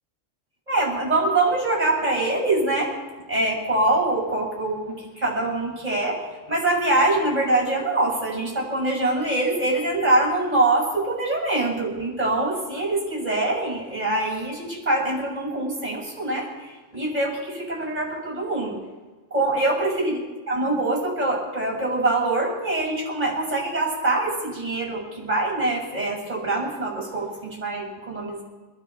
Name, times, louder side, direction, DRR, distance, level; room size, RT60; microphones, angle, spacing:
voice 1, 0.7-2.9 3.3-18.8 19.3-20.2 20.5-28.4, right 2 dB, 30° right, -2 dB, 7.5 m, -24 dB
27.5 x 12.5 x 4.2 m, 1.3 s
omnidirectional pair, 1.3 m